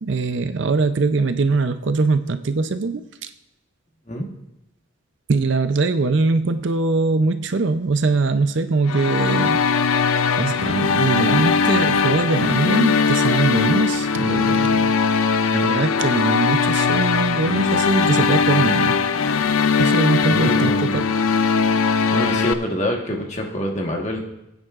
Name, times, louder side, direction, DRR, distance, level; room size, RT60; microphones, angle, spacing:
voice 1, 0.0-3.3 5.3-9.7 10.4-14.9 15.5-19.0 19.8-21.1, right 3 dB, 60° right, 10 dB, 0.5 m, -22 dB
sound 1, 8.9-22.5, left 5 dB, 85° left, 0.5 m, -20 dB
voice 2, 20.3-21.0 22.1-24.2, equal, 35° left, 1 dB, 1.4 m, -25 dB
20.0 x 9.2 x 2.4 m, 0.89 s
head